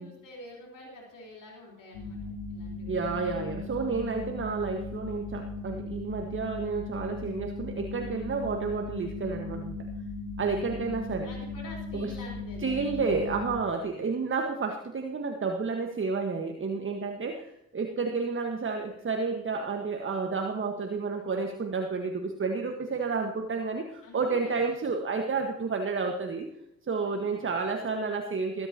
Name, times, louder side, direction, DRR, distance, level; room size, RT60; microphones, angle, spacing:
voice 1, 0.0-3.4 10.5-10.8 11.2-12.9 13.9-14.2 24.0-24.6 27.1-27.5, left 2 dB, 50° left, -2 dB, 4.0 m, -48 dB
sound 1, 1.9-13.5, left 3 dB, 80° left, 2.3 m, -37 dB
voice 2, 2.9-9.8 10.4-11.3 11.9-12.1 12.6-26.5 26.9-28.7, right 4 dB, 30° right, 4 dB, 1.5 m, -31 dB
21.5 x 10.5 x 2.9 m, 0.81 s
figure-of-eight pair, 40°, 40 cm